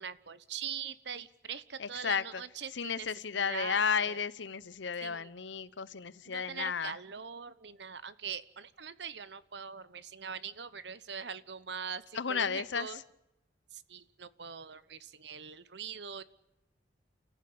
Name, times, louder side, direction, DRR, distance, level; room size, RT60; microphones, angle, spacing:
voice 1, 0.0-3.1 3.4-4.2 5.0-5.3 6.3-13.0 13.7-16.2, right 7 dB, 70° right, 15 dB, 1.1 m, -42 dB
voice 2, 1.8-2.4 2.7-7.0 12.1-13.0, left 6 dB, 85° left, 17 dB, 0.9 m, -33 dB
29.0 x 15.0 x 8.7 m, 0.93 s
head